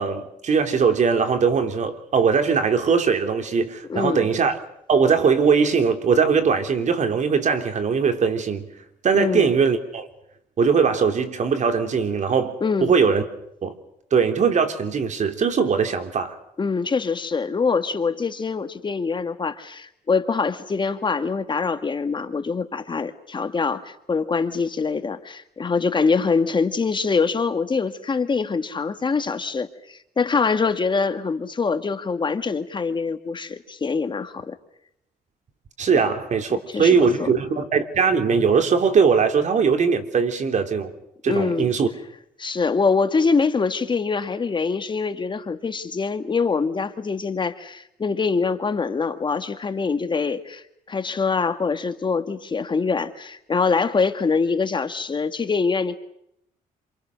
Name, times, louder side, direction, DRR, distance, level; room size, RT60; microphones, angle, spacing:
voice 1, 0.0-4.6 4.9-8.7 9.0-10.1 10.6-13.2 13.6-13.7 14.1-16.4 35.8-40.9 41.2-41.9, right 5 dB, 50° right, 3.3 m, -20 dB
voice 2, 3.9-4.3 9.1-9.5 12.6-12.9 16.6-34.5 36.7-37.3 41.3-41.7 42.4-56.0, left 4 dB, 30° left, 1.9 m, -24 dB
27.5 x 27.5 x 6.5 m
cardioid pair, 100°, 16 cm